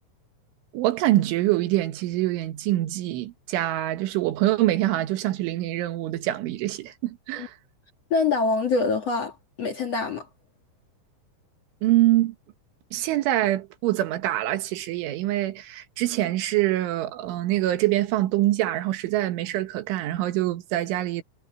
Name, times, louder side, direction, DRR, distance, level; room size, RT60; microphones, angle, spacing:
voice 1, 0.7-7.6 11.8-12.4 12.9-21.2, right 15 dB, 85° right, 3.9 m, -25 dB
voice 2, 8.1-10.3, left 4 dB, 45° left, 2.6 m, -25 dB
omnidirectional pair, 5.4 m